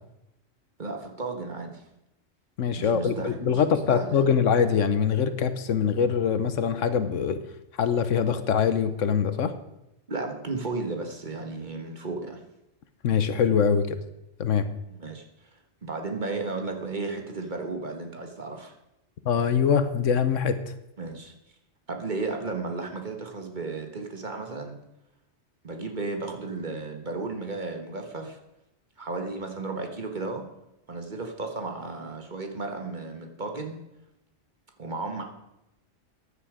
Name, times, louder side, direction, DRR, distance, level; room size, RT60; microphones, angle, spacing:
voice 1, 0.8-1.8 2.8-4.3 10.1-12.4 14.9-15.2 15.5-18.7 21.0-21.3 21.9-24.8 25.6-28.4 29.0-30.5 30.9-33.8 34.8-35.2, right 3 dB, 40° right, 3 dB, 1.6 m, -34 dB
voice 2, 2.6-7.4 7.8-9.5 13.0-14.0 14.4-14.7 19.2-20.6, left 7 dB, 85° left, 11 dB, 1.2 m, -23 dB
15.0 x 10.0 x 5.0 m, 0.88 s
omnidirectional pair, 1.3 m